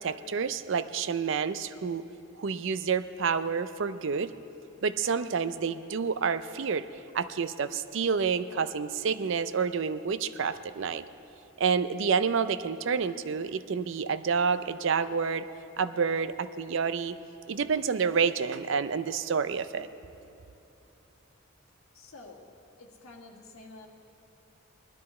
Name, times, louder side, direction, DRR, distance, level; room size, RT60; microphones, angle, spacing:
voice 1, 0.0-2.0 2.4-4.3 4.8-6.9 7.1-11.0 11.6-15.5 15.8-17.2 17.5-19.9, right 6 dB, 60° right, 13 dB, 0.4 m, -29 dB
voice 2, 21.9-23.9, left 2 dB, 70° left, 0 dB, 1.6 m, -49 dB
19.5 x 12.5 x 4.3 m, 2.9 s
head